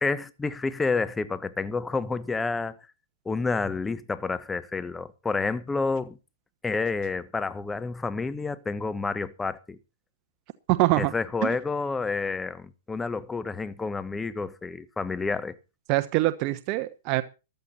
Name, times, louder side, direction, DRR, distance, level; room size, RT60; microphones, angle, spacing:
voice 1, 0.0-2.7 3.2-6.2 6.6-9.8 11.0-15.6, left 4 dB, 10° left, 1.2 m, -29 dB
voice 2, 10.7-11.1 11.4-11.6 15.9-17.2, right 18 dB, 40° right, 1.2 m, -24 dB
15.0 x 13.0 x 4.3 m
hypercardioid pair, 135°, 0 cm